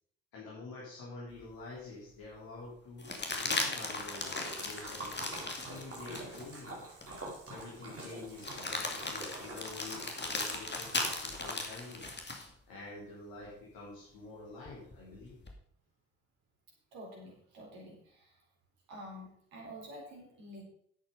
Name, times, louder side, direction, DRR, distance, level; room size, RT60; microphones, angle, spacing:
voice 1, 0.3-3.1 3.4-5.2 5.6-6.8 7.5-12.1 12.7-15.4, left 3 dB, 60° left, -6 dB, 3.7 m, -47 dB
sound 1, 1.4-1.5 3.0-6.5 7.0-7.1 8.4-12.5 14.7-15.5, left 3 dB, 25° left, 2.7 m, -37 dB
Splash splatter, 3.1-12.2, right 2 dB, 35° right, 4.6 m, -47 dB
voice 2, 16.9-18.4 18.9-20.6, equal, 65° right, -2 dB, 4.1 m, -48 dB
11.0 x 8.7 x 5.4 m, 0.66 s
figure-of-eight pair, 45°, 40 cm